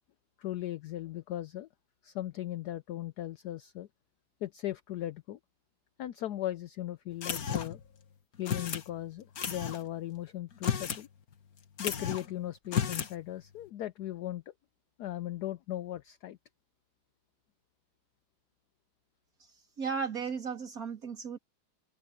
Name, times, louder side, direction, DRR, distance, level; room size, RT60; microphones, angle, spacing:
voice 1, 0.4-1.7 2.0-3.9 4.4-5.4 6.0-7.8 8.4-11.1 11.8-14.5 15.0-16.4, left 13 dB, 70° left, 0.9 m, -38 dB
sound 1, 7.2-7.9 8.5-8.9 9.4-9.8 10.5-11.1 11.3-11.4 11.8-12.3 12.7-13.1, left 8 dB, 50° left, 1.7 m, -33 dB
voice 2, 19.8-21.4, right 6 dB, 45° right, 3.6 m, -35 dB
omnidirectional pair, 2.2 m